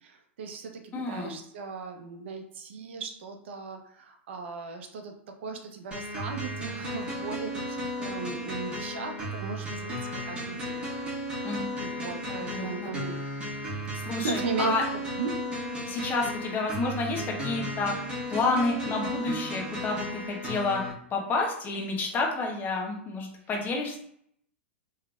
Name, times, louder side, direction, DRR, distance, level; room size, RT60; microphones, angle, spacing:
voice 1, 0.0-5.1 5.4-10.0 10.3-10.8 11.8-13.1 14.2-14.7 15.2-15.3, right 5 dB, 65° right, 5 dB, 0.7 m, -37 dB
voice 2, 0.9-1.4 11.4-11.7 12.3-12.9 14.0-14.8 15.9-20.8 21.1-24.0, left 3 dB, 25° left, 0 dB, 1.0 m, -30 dB
sound 1, 5.9-20.9, equal, 15° right, 1.4 m, -35 dB
3.6 x 3.1 x 2.4 m, 0.68 s
hypercardioid pair, 110°, 7 cm